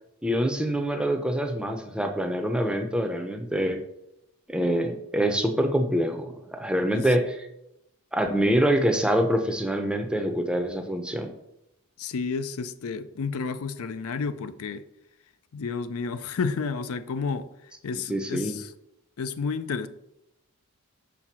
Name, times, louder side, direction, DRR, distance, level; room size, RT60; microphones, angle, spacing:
voice 1, 0.2-3.8 4.5-7.4 8.1-11.3 18.1-18.6, equal, 5° right, 5 dB, 0.5 m, -25 dB
voice 2, 12.0-14.8 15.5-17.5 17.8-18.7 19.2-19.9, left 5 dB, 75° left, 12 dB, 0.4 m, -31 dB
5.9 x 3.6 x 6.0 m, 0.83 s
head